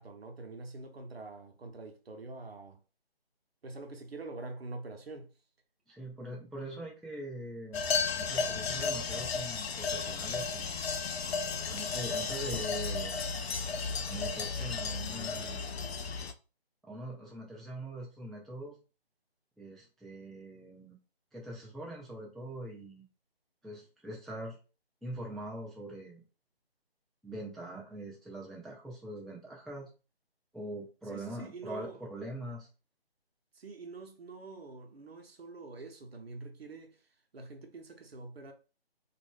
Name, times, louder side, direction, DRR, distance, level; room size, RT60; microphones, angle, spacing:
voice 1, 0.0-2.8 3.6-5.3 31.1-32.1 33.5-38.5, right 3 dB, 70° right, 0.8 m, -45 dB
voice 2, 5.9-7.8 8.2-10.7 11.7-13.2 14.1-15.8 16.8-18.8 19.6-21.0 21.3-23.0 23.6-24.6 25.0-26.2 27.2-29.9 30.5-32.7, right 1 dB, ahead, 0.3 m, -43 dB
sound 1, 7.7-16.3, left 4 dB, 80° left, 0.5 m, -34 dB
2.4 x 2.1 x 3.2 m
figure-of-eight pair, 175°, 31 cm